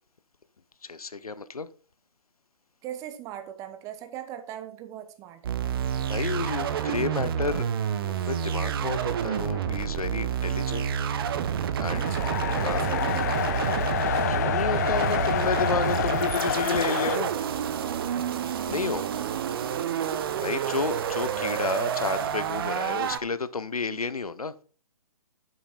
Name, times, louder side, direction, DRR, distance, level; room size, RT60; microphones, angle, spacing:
voice 1, 0.8-1.7 6.1-7.6 8.0-10.9 11.8-12.1 12.6-12.9 14.3-17.3 18.7-19.0 20.4-24.5, left 4 dB, 85° left, 0.8 m, -31 dB
voice 2, 2.8-5.6 11.9-14.6 19.0-20.0, right 10 dB, 15° right, 0.9 m, -40 dB
sound 1, 5.4-23.2, right 8 dB, 40° right, 0.9 m, -29 dB
sound 2, 11.9-17.2, left 10 dB, 30° left, 0.4 m, -28 dB
8.4 x 7.0 x 4.3 m
figure-of-eight pair, 135°, 18 cm